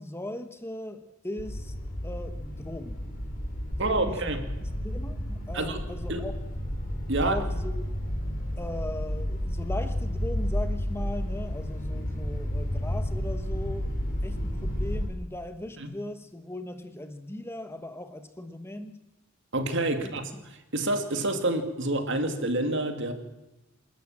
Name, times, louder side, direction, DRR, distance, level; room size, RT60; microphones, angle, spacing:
voice 1, 0.0-1.7 2.0-3.0 3.7-4.4 4.8-6.3 7.2-7.8 8.6-13.9 14.2-19.0 20.0-20.1, left 1 dB, 10° left, 9 dB, 1.1 m, -38 dB
sound 1, 1.4-15.1, equal, 40° left, 4.7 m, -31 dB
voice 2, 3.8-4.4 5.5-5.8 6.1-6.3 7.1-7.4 15.8-15.9 19.5-20.2 20.7-23.1, right 2 dB, 60° right, 7 dB, 2.4 m, -27 dB
28.0 x 13.0 x 7.3 m, 1.0 s
head